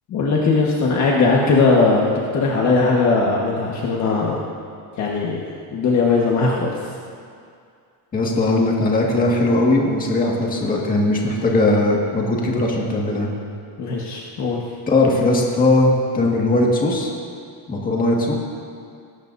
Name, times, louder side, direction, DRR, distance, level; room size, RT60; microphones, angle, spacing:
voice 1, 0.1-4.4 5.0-5.4 5.7-6.7 13.8-14.6, left 3 dB, 40° left, -3 dB, 1.5 m, -19 dB
voice 2, 8.1-13.3 14.9-17.1 17.7-18.3, left 2 dB, 20° left, -2 dB, 1.9 m, -19 dB
20.5 x 17.5 x 2.7 m, 2.3 s
cardioid pair, 175°, 44 cm